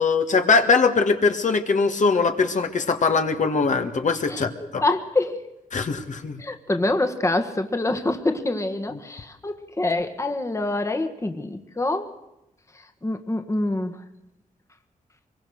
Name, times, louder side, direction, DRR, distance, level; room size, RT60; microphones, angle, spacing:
voice 1, 0.0-4.8 5.7-6.4, left 4 dB, 60° left, 6 dB, 1.7 m, -21 dB
voice 2, 4.3-5.4 6.4-12.1 13.0-14.0, left 2 dB, 20° left, 7 dB, 1.5 m, -26 dB
24.0 x 22.0 x 6.5 m, 0.88 s
wide cardioid pair, 90°, 15 cm